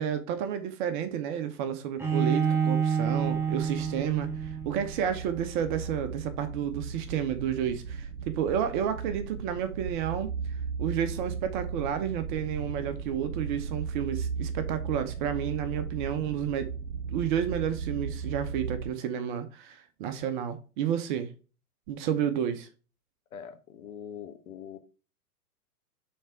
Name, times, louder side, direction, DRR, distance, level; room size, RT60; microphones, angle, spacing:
voice 1, 0.0-10.3 10.8-16.7 17.1-21.3 21.9-22.7, right 9 dB, 35° right, 0.7 m, -31 dB
Bowed string instrument, 2.0-5.0, right 7 dB, 5° right, 0.9 m, -28 dB
sound 1, 3.2-18.9, right 5 dB, 75° right, 1.1 m, -36 dB
voice 2, 23.3-24.8, left 8 dB, 65° left, 1.4 m, -43 dB
6.5 x 3.4 x 4.4 m
hypercardioid pair, 125°, 46 cm